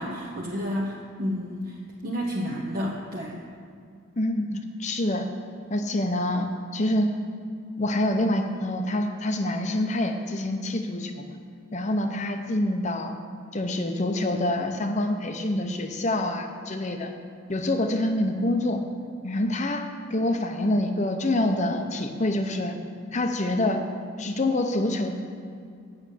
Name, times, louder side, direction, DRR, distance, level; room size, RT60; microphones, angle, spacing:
voice 1, 0.0-3.4, equal, 45° right, -3 dB, 0.9 m, -30 dB
voice 2, 4.2-5.3 5.7-7.1 7.8-11.3 11.7-13.1 13.5-17.1 17.5-18.8 19.2-22.7 23.1-23.8 24.2-25.1, left 1 dB, 35° left, 6 dB, 0.7 m, -26 dB
8.3 x 6.5 x 8.4 m, 2.3 s
head